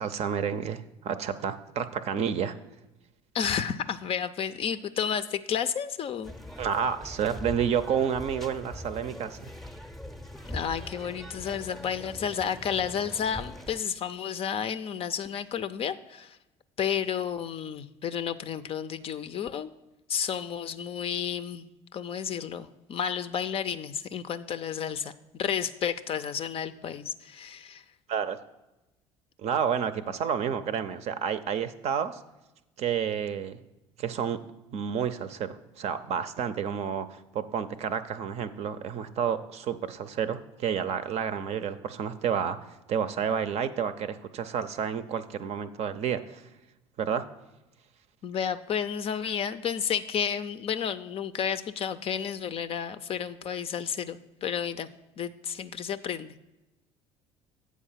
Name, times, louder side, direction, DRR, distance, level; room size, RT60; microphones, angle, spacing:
voice 1, 0.0-2.6 6.6-9.5 28.1-28.4 29.4-32.2 32.8-33.6 34.0-34.4 34.7-42.6 42.9-46.4 47.0-47.2, right 7 dB, 45° right, 11 dB, 0.6 m, -30 dB
voice 2, 3.3-6.3 10.5-16.4 16.8-19.7 20.1-21.7 21.9-27.8 48.2-54.9 55.2-56.4, left 8 dB, 40° left, 12 dB, 0.5 m, -31 dB
sound 1, 6.2-13.8, left 1 dB, ahead, 0.7 m, -42 dB
8.4 x 4.7 x 5.7 m, 0.98 s
figure-of-eight pair, 60°, 16 cm